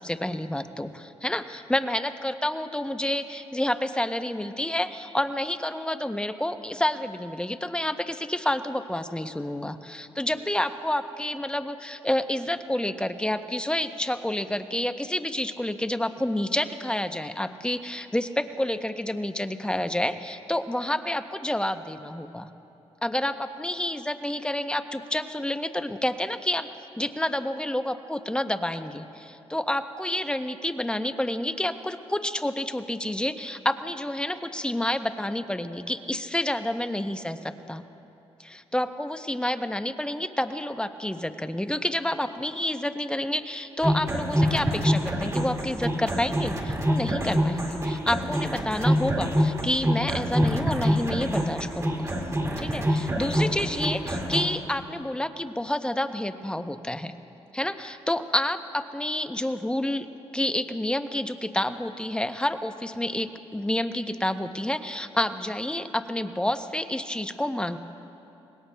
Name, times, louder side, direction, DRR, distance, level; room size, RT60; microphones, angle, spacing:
voice 1, 0.0-22.5 23.0-26.7 27.0-37.8 38.4-52.1 52.6-57.2 57.5-60.1 60.3-67.8, left 1 dB, 10° left, 9 dB, 0.7 m, -29 dB
sound 1, 43.8-54.4, equal, 25° right, 2.0 m, -26 dB
26.0 x 20.5 x 2.2 m, 3.0 s
cardioid pair, 80°, 11 cm